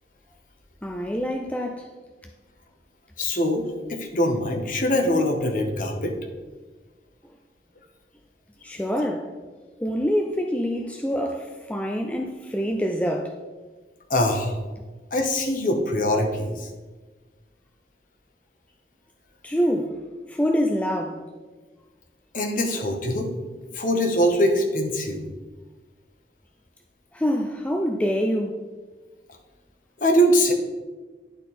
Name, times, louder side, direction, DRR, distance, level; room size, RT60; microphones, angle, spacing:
voice 1, 0.8-1.9 8.6-9.3 9.8-13.4 19.4-20.0 20.3-21.2 27.1-28.6, equal, 10° left, 0.4 m, -26 dB
voice 2, 3.2-6.1 14.1-14.6 15.1-16.7 22.3-23.3 23.7-25.2 30.0-30.5, equal, 50° left, 1.0 m, -23 dB
11.0 x 4.1 x 4.2 m
head